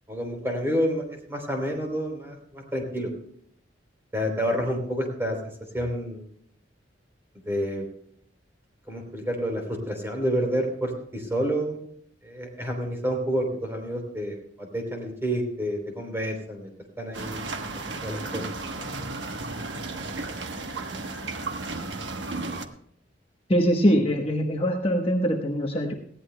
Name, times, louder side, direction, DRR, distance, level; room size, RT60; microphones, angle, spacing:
voice 1, 0.1-1.0 1.3-3.1 4.1-5.4 5.7-6.2 7.4-7.8 8.9-11.8 12.2-16.7 17.0-17.4 17.9-18.5, equal, 15° right, 2 dB, 3.4 m, -29 dB
sound 1, 17.1-22.6, right 3 dB, 70° right, 1.1 m, -34 dB
voice 2, 23.5-25.9, equal, 30° left, 1 dB, 1.0 m, -23 dB
19.5 x 15.5 x 2.2 m, 0.69 s
head